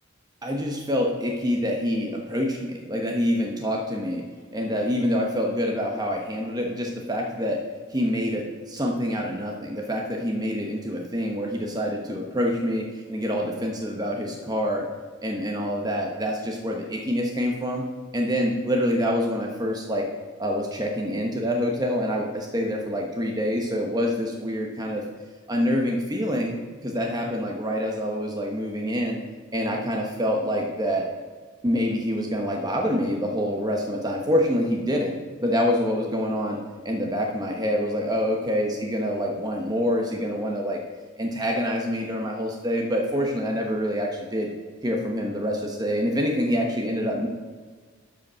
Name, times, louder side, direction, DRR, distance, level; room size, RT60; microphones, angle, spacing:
voice 1, 0.4-4.2 4.5-7.6 7.9-14.9 15.2-17.9 18.1-20.1 20.4-25.0 25.5-29.2 29.5-31.1 31.6-35.1 35.4-36.6 36.8-40.8 41.2-44.5 44.8-47.3, equal, 20° right, 1 dB, 1.0 m, -26 dB
12.5 x 5.4 x 6.2 m, 1.5 s
head